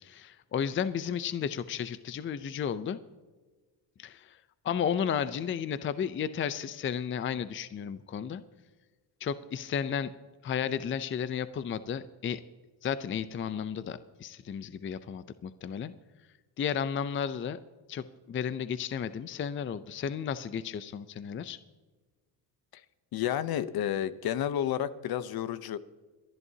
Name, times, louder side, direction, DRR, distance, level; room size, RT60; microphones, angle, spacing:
voice 1, 0.0-3.0 4.0-4.4 4.6-8.4 9.2-10.1 10.4-12.4 12.8-15.9 16.6-17.6 17.9-21.6, left 8 dB, 30° left, 14 dB, 0.5 m, -33 dB
voice 2, 23.1-25.8, left 10 dB, 60° left, 15 dB, 0.8 m, -31 dB
27.0 x 11.0 x 2.8 m, 1.4 s
cardioid pair, 105°, 41 cm